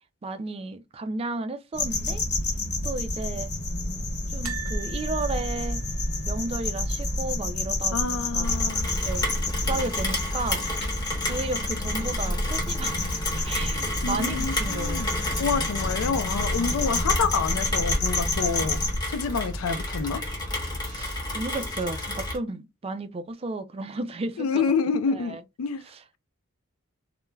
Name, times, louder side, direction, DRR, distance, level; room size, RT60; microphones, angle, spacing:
voice 1, 0.2-2.2 2.8-3.5 4.3-5.8 6.3-8.6 9.0-10.7 11.3-15.3 16.6-17.1 20.9-24.6 25.1-25.4 25.8-26.0, right 3 dB, 30° right, 0.3 m, -34 dB
sound 1, 1.7-19.0, left 2 dB, 50° left, 0.8 m, -29 dB
sound 2, 4.4-7.5 7.8-8.0 8.2-8.3 9.6-10.1 10.6-10.7, right 9 dB, 75° right, 0.7 m, -42 dB
voice 2, 7.9-8.9 14.0-15.1 15.4-18.8 19.1-20.2 24.4-25.8, left 5 dB, 80° left, 0.4 m, -28 dB
Rain, 8.4-22.4, left 1 dB, 20° left, 0.9 m, -31 dB
2.3 x 2.1 x 3.1 m
head